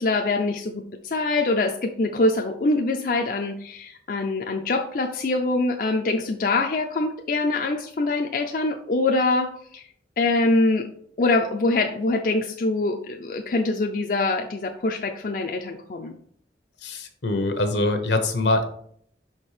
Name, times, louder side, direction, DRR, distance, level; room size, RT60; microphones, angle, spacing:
voice 1, 0.0-9.8 10.2-10.9 11.2-16.2, left 2 dB, 50° left, 4 dB, 0.5 m, -24 dB
voice 2, 16.8-18.6, left 2 dB, 80° left, 6 dB, 1.0 m, -23 dB
5.7 x 4.4 x 4.9 m, 0.65 s
head